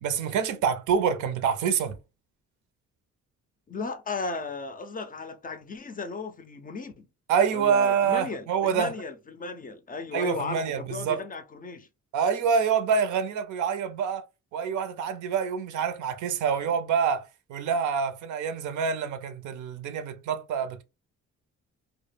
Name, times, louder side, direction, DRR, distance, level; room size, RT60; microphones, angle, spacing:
voice 1, 0.0-2.0 7.3-8.9 10.1-11.2 12.1-14.2 14.5-17.2 17.5-20.8, right 6 dB, 75° right, 0.5 m, -26 dB
voice 2, 3.7-7.1 7.5-11.9, left 4 dB, 30° left, 0.4 m, -35 dB
2.1 x 2.1 x 3.2 m
cardioid pair, 90°, 30 cm